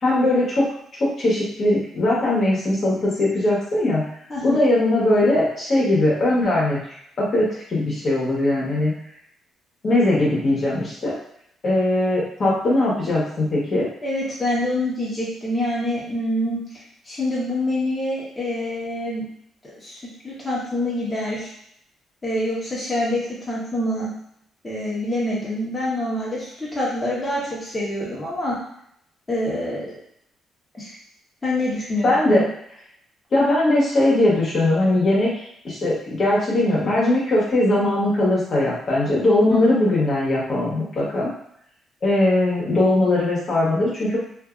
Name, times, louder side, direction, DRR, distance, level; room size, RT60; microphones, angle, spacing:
voice 1, 0.0-0.7 1.0-4.0 4.4-6.8 7.2-8.9 9.8-11.1 11.6-13.9 32.0-32.4 33.3-35.3 35.6-41.3 42.0-44.2, left 1 dB, 50° left, -6 dB, 1.1 m, -20 dB
voice 2, 14.0-16.6 17.0-19.3 19.8-20.0 20.2-21.5 22.2-24.1 24.6-28.6 29.3-30.0 30.7-31.0 31.4-32.4 39.5-39.8, left 1 dB, 20° left, -7 dB, 1.1 m, -26 dB
2.6 x 2.6 x 2.4 m, 0.70 s
cardioid pair, 90°, 0 cm